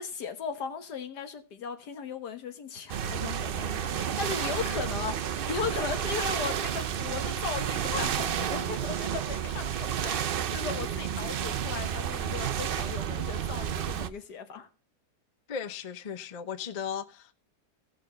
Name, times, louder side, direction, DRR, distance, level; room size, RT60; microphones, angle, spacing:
voice 1, 0.0-10.2 10.5-14.7, left 6 dB, 80° left, 1.8 m, -37 dB
sound 1, 2.9-14.1, right 9 dB, 85° right, 0.4 m, -31 dB
voice 2, 15.5-17.3, left 7 dB, 50° left, 0.4 m, -36 dB
16.5 x 6.3 x 3.8 m
omnidirectional pair, 1.7 m